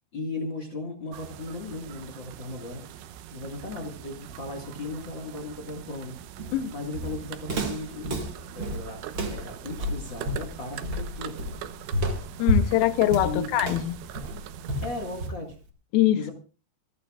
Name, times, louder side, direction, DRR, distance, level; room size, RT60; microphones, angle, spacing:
voice 1, 0.1-2.8 3.3-8.3 8.5-9.0 9.3-11.4 13.2-13.5 14.8-15.5 16.1-16.3, left 2 dB, 50° left, 1.3 m, -36 dB
sound 1, 1.1-15.3, right 10 dB, 85° right, 3.4 m, -42 dB
Walk footsteps, 6.4-15.6, equal, 45° right, 1.5 m, -30 dB
voice 2, 12.4-14.0 15.9-16.2, left 13 dB, 85° left, 2.1 m, -23 dB
26.5 x 11.0 x 2.4 m
omnidirectional pair, 5.3 m